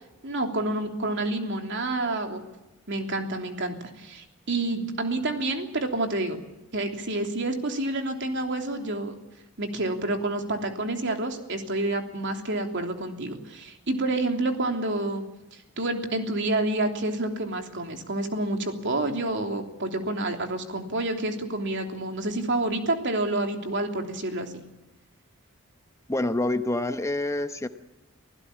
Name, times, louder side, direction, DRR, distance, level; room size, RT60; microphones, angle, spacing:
voice 1, 0.2-2.4 2.9-6.4 6.7-9.1 9.6-15.2 15.5-24.6, right 2 dB, 60° right, 4 dB, 3.2 m, -28 dB
voice 2, 26.1-27.7, left 2 dB, 15° left, 9 dB, 0.9 m, -27 dB
25.5 x 16.0 x 8.6 m, 0.99 s
head